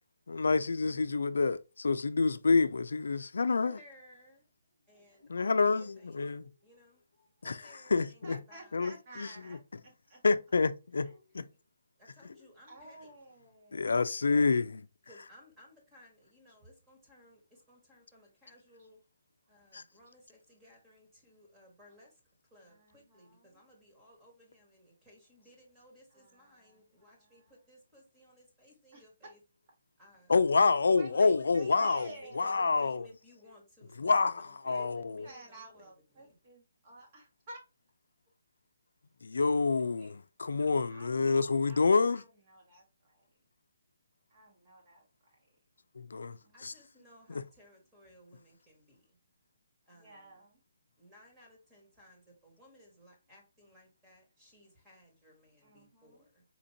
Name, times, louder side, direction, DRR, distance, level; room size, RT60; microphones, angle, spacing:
voice 1, 0.3-3.8 5.3-6.5 7.4-7.6 7.9-8.4 8.7-9.3 10.2-11.1 11.3-11.4 13.7-14.8 19.7-19.8 30.3-32.1 32.4-33.0 34.0-35.3 39.2-42.2 46.0-46.4 46.6-46.7 47.3-47.4, left 4 dB, 80° left, 0.3 m, -28 dB
voice 2, 3.6-4.4 4.9-6.2 6.6-7.0 7.4-8.8 9.1-9.6 11.3-11.5 12.0-13.1 15.0-19.0 19.5-22.2 22.5-29.4 30.0-30.3 31.1-31.8 32.2-35.9 36.1-36.3 46.5-49.1 49.9-50.3 51.0-56.4, equal, 15° right, 1.4 m, -59 dB
voice 3, 4.9-5.4 6.4-7.4 8.2-10.2 11.0-11.4 12.6-14.0 16.5-16.6 18.8-18.9 22.7-23.6 26.1-27.6 28.9-29.3 31.0-31.1 31.5-32.7 33.4-33.6 34.6-34.9 35.2-37.6 39.3-39.4 40.0-40.1 40.9-43.3 44.3-45.6 46.4-47.4 49.9-50.6 55.6-56.3, right 2 dB, 40° right, 1.3 m, -54 dB
4.3 x 2.6 x 2.8 m
hypercardioid pair, 155°, 0 cm